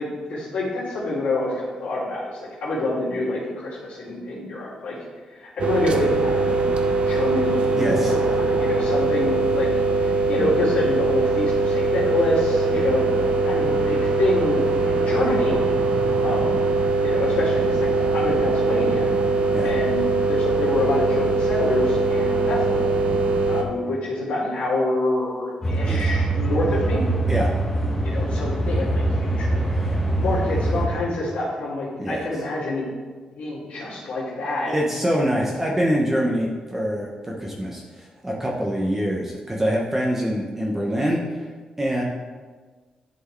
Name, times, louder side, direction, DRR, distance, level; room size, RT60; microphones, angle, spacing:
voice 1, 0.0-5.0 5.3-6.7 7.1-9.7 10.0-13.1 13.4-15.6 16.2-16.7 17.0-19.1 19.6-22.9 23.4-27.0 28.0-29.6 30.2-32.8 33.3-34.7, left 2 dB, 85° left, -10 dB, 2.4 m, -27 dB
sound 1, 5.6-23.6, right 3 dB, 55° right, 0.6 m, -21 dB
voice 2, 7.8-8.2 12.7-12.9 19.5-19.7 25.8-26.1 27.3-27.5 29.8-29.9 32.0-32.2 34.7-37.1 37.4-41.2 41.8-42.0, equal, 15° right, -2 dB, 0.9 m, -24 dB
sound 2, 25.6-30.9, right 2 dB, 15° left, 1.5 m, -23 dB
11.0 x 4.5 x 3.3 m, 1.4 s
wide cardioid pair, 135°, 2 cm